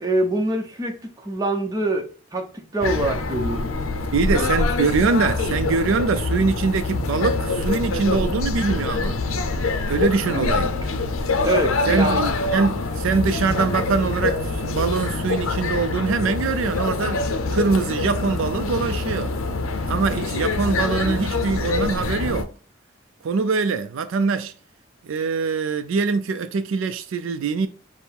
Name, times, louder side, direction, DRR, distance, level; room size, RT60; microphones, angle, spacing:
voice 1, 0.0-3.7 4.2-4.5 10.3-10.5 11.4-12.3 20.0-20.3, right 2 dB, 15° right, 0.7 m, -25 dB
sound 1, 2.8-22.4, left 3 dB, 75° left, 0.6 m, -25 dB
voice 2, 4.1-9.1 9.9-10.7 11.9-12.2 12.5-17.2 17.5-19.3 19.9-22.5 23.2-24.5 25.0-27.7, right 4 dB, 70° right, 0.4 m, -23 dB
5.2 x 2.0 x 4.5 m
head